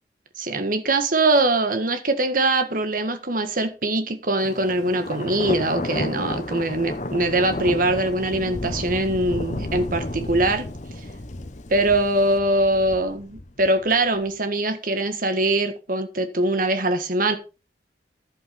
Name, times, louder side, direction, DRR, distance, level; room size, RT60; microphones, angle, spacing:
voice 1, 0.4-10.6 11.7-17.4, right 2 dB, 50° right, 1.7 m, -22 dB
Thunder, 4.4-14.2, left 2 dB, 40° left, 1.1 m, -32 dB
11.0 x 8.1 x 5.3 m
head